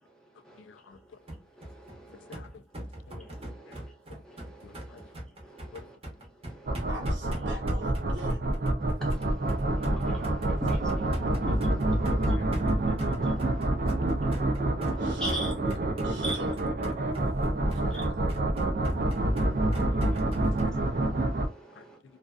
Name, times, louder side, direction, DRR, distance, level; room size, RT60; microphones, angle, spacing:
voice 1, 0.7-1.0 2.3-2.5 3.1-3.2 4.6-5.0 5.7-5.8 9.8-10.0 10.5-10.6 11.3-11.4 12.1-12.9 13.6-13.7 14.0-14.3 17.2-17.4, left 6 dB, 85° left, 0.3 m, -48 dB
sound 1, 1.3-20.7, right 1 dB, 30° right, 0.8 m, -41 dB
voice 2, 1.6-2.3 3.1-3.9 4.2-5.1 5.4-6.0 6.5-6.9 9.0-12.4 13.2-13.6 14.9-15.5 16.2-16.4 17.6-18.1 19.1-22.0, right 1 dB, 5° left, 0.7 m, -43 dB
sound 2, 6.7-21.5, right 1 dB, 50° right, 0.4 m, -27 dB
voice 3, 6.9-8.4 15.0-15.5 16.0-16.6 17.9-18.3, right 1 dB, 85° right, 1.1 m, -43 dB
2.5 x 2.3 x 2.3 m
head